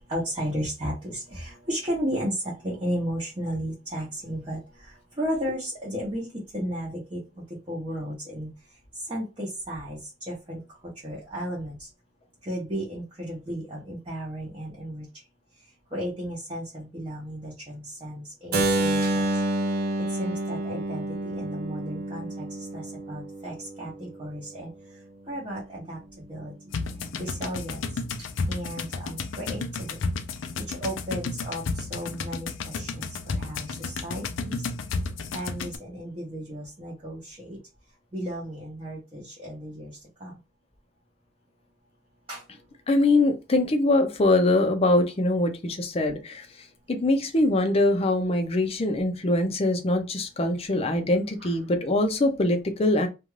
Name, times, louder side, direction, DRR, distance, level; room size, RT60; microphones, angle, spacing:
voice 1, 0.1-2.4 2.6-4.6 5.2-6.3 6.5-7.2 7.7-8.5 9.1-10.0 10.3-10.6 11.0-11.7 12.5-15.0 15.9-19.2 20.2-21.1 21.3-22.5 22.7-24.7 25.3-26.0 26.3-26.5 27.2-27.8 28.5-30.0 30.7-34.6 35.3-37.6 38.1-39.9 40.2-40.3 42.3-42.4 51.4-51.5, equal, 30° right, 0.8 m, -34 dB
Keyboard (musical), 18.5-24.4, right 1 dB, 50° right, 0.5 m, -28 dB
sound 1, 26.7-35.8, left 4 dB, 90° left, 0.4 m, -32 dB
voice 2, 42.9-46.5 46.9-53.1, left 2 dB, 30° left, 0.5 m, -23 dB
2.5 x 2.3 x 3.1 m
head